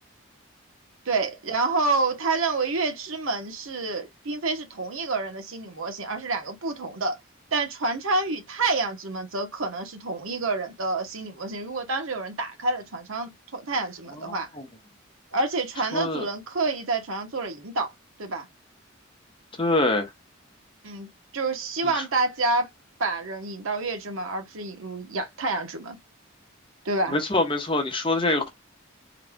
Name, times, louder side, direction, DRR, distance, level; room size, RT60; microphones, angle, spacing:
voice 1, 1.1-7.2 7.5-14.5 15.3-17.9 18.2-18.5 20.8-21.1 21.3-22.7 23.0-26.0 26.8-27.2, right 3 dB, 75° right, 1.0 m, -28 dB
voice 2, 15.9-16.3 19.6-20.1 27.1-28.5, left 2 dB, 25° left, 1.0 m, -24 dB
3.9 x 2.3 x 3.5 m
head